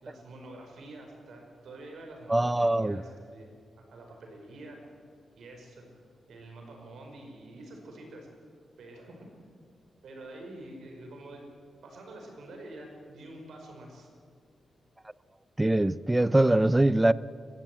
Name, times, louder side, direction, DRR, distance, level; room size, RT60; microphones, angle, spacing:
voice 1, 0.0-3.5 3.8-4.8 5.4-5.9 6.3-8.3 8.8-9.3 10.0-11.5 11.8-14.1, right 1 dB, 75° right, 2 dB, 5.1 m, -47 dB
voice 2, 2.3-3.0 15.6-17.1, right 1 dB, 10° right, 18 dB, 0.4 m, -23 dB
21.5 x 15.0 x 9.2 m, 2.1 s
wide cardioid pair, 155°, 0 cm